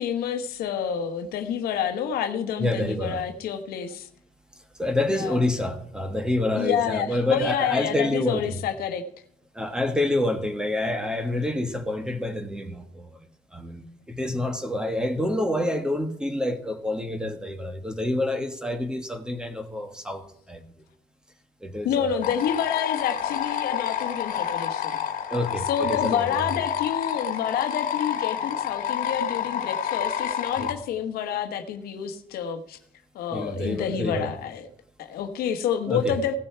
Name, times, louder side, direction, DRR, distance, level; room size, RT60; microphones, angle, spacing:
voice 1, 0.0-4.1 5.1-5.5 6.6-9.0 21.8-25.0 25.7-32.8 33.1-34.7 35.0-36.4, left 8 dB, 90° left, 1.2 m, -28 dB
voice 2, 2.6-3.2 4.8-8.6 9.5-13.2 13.5-20.2 20.5-20.6 21.6-22.2 25.3-26.5 30.6-30.7 33.3-34.3 35.9-36.2, left 1 dB, 5° right, 1.4 m, -27 dB
sound 1, 22.2-30.7, left 9 dB, 60° left, 1.7 m, -29 dB
16.5 x 6.6 x 4.4 m
cardioid pair, 145°, 15 cm